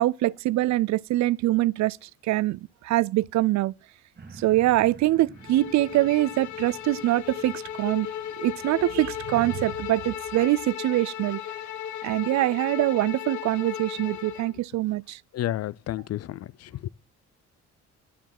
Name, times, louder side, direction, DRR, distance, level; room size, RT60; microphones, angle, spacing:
voice 1, 0.0-3.7 4.4-8.1 8.4-11.4 12.0-15.2, right 16 dB, 70° right, 0.5 m, -24 dB
sound 1, 4.2-11.5 12.1-12.2, right 4 dB, 35° right, 1.9 m, -51 dB
Bowed string instrument, 5.4-14.5, left 10 dB, 80° left, 1.0 m, -36 dB
voice 2, 15.3-16.9, left 13 dB, 60° left, 0.5 m, -31 dB
11.5 x 7.0 x 6.0 m
cardioid pair, 85°, 29 cm